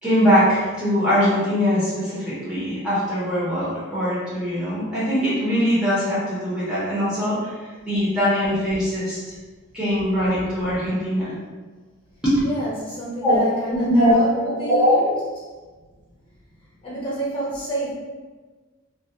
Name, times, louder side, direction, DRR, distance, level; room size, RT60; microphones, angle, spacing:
voice 1, 0.0-7.4 7.8-9.3 9.7-11.3 12.2-12.3 13.2-13.4 13.7-14.9, equal, 5° right, -11 dB, 0.6 m, -21 dB
voice 2, 12.4-15.1 15.4-15.5 16.8-17.9, right 1 dB, 25° left, -7 dB, 0.8 m, -29 dB
2.3 x 2.1 x 2.7 m, 1.3 s
head